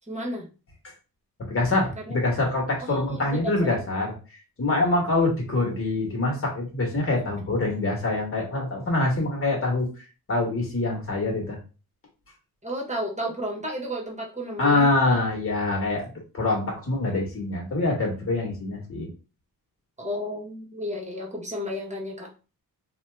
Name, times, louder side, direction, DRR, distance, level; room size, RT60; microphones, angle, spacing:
voice 1, 0.1-0.5 2.1-2.2 2.8-3.7 7.1-7.2 12.6-14.9 20.0-22.3, equal, 20° right, -1 dB, 1.2 m, -32 dB
voice 2, 1.4-4.1 4.6-9.9 10.3-11.6 14.6-16.1 16.3-19.1, left 2 dB, 35° left, 0 dB, 1.4 m, -25 dB
2.8 x 2.4 x 3.4 m, 0.33 s
cardioid pair, 75°, 38 cm